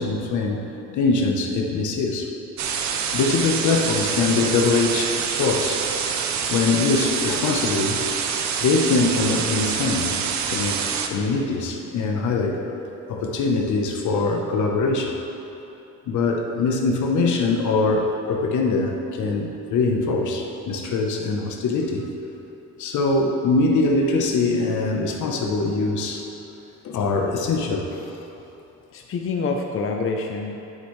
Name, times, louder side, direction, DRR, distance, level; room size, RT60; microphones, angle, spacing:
voice 1, 0.0-2.3 3.1-5.9 6.5-8.0 8.6-10.2 10.5-12.6 13.1-15.1 16.1-22.1 22.8-26.2 26.8-27.9, left 3 dB, 75° left, 2 dB, 1.0 m, -23 dB
sound 1, 2.6-11.1, right 6 dB, 65° right, 0.7 m, -26 dB
voice 2, 27.9-28.3 28.9-30.6, left 4 dB, 45° left, 2 dB, 0.7 m, -27 dB
9.1 x 8.3 x 3.2 m, 3.0 s
cardioid pair, 90°, 30 cm